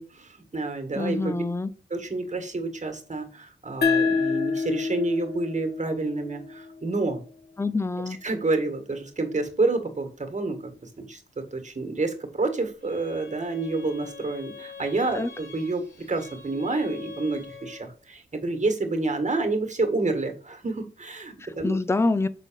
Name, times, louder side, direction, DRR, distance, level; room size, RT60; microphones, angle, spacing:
voice 1, 0.0-1.3 1.9-7.2 8.2-21.8, right 3 dB, 35° right, 1.8 m, -29 dB
voice 2, 1.0-1.7 7.6-8.2 15.1-15.3 21.6-22.3, left 3 dB, 15° left, 0.5 m, -25 dB
sound 1, 3.8-7.0, left 4 dB, 55° left, 1.1 m, -27 dB
Bowed string instrument, 12.8-18.0, left 6 dB, 75° left, 3.0 m, -44 dB
6.4 x 4.1 x 5.1 m
cardioid pair, 60°, 20 cm